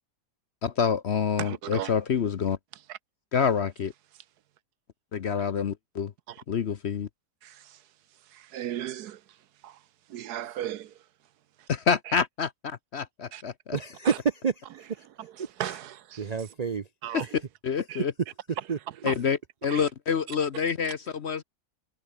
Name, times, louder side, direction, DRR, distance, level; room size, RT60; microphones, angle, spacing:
voice 1, 0.6-2.6 3.3-3.9 5.1-6.1 6.5-7.1 11.7-13.8 17.1-17.2 17.6-18.1 19.0-21.4, left 6 dB, 50° left, 0.9 m, -27 dB
voice 2, 1.4-2.0 2.9-3.0 6.3-6.4 7.4-7.9 8.2-9.8 10.1-11.1 11.6-11.7 12.1-12.2 13.3-13.4 14.0-14.2 15.2-16.3 17.0-17.4 17.9-18.0 19.1-19.3 19.7-19.9 20.3-20.4, right 11 dB, 75° right, 1.3 m, -37 dB
voice 3, 13.7-15.0 15.4-15.5 16.2-16.9 17.2-17.3 18.7-18.8, right 6 dB, 45° right, 0.5 m, -29 dB
omnidirectional pair, 1.8 m